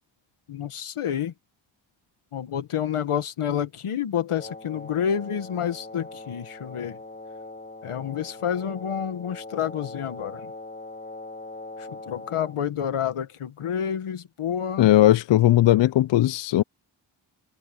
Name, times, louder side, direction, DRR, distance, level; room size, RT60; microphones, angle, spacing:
voice 1, 0.5-1.3 2.3-7.0 7.8-10.5 11.8-14.9, left 9 dB, 85° left, 1.8 m, -29 dB
Wind instrument woodwind instrument, 4.3-12.6, left 2 dB, 20° left, 4.6 m, -41 dB
voice 2, 14.8-16.6, left 14 dB, 60° left, 0.5 m, -18 dB
open air
cardioid pair, 50°, 50 cm